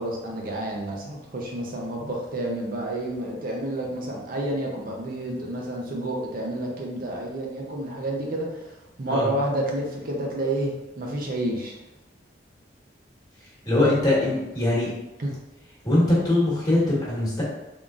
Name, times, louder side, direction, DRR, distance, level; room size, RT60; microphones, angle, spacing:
voice 1, 0.0-8.5 9.0-11.7 15.2-15.3, right 1 dB, 50° right, -1 dB, 0.6 m, -29 dB
voice 2, 13.6-14.9 15.8-17.4, left 1 dB, 20° left, -7 dB, 1.4 m, -22 dB
3.7 x 3.5 x 2.4 m, 0.99 s
head